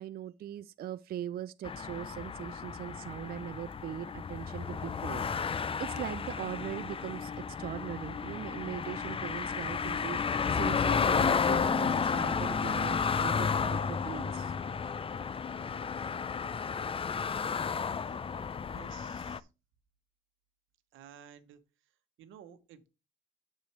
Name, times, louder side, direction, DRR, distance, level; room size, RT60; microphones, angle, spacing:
voice 1, 0.0-5.5 5.8-14.5, right 11 dB, 50° right, 0.4 m, -40 dB
sound 1, 1.6-19.4, left 6 dB, 30° left, 0.4 m, -32 dB
voice 2, 18.7-19.5 20.9-21.6 22.2-22.9, right 9 dB, 85° right, 1.1 m, -53 dB
9.1 x 6.7 x 3.2 m
cardioid pair, 90°, 20 cm